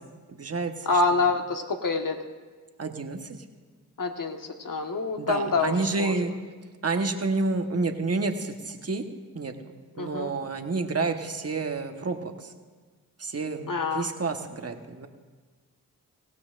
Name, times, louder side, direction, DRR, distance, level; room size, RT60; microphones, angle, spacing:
voice 1, 0.0-1.2 2.8-3.4 5.2-6.3 6.8-9.0 9.3-9.5 10.0-12.3 13.2-15.1, right 3 dB, 40° right, 6 dB, 1.2 m, -29 dB
voice 2, 0.9-2.1 4.0-4.4 4.6-6.1 10.0-10.3 13.7-14.1, left 3 dB, 60° left, 4 dB, 1.4 m, -26 dB
19.5 x 16.0 x 2.5 m, 1.4 s
cardioid pair, 40°, 37 cm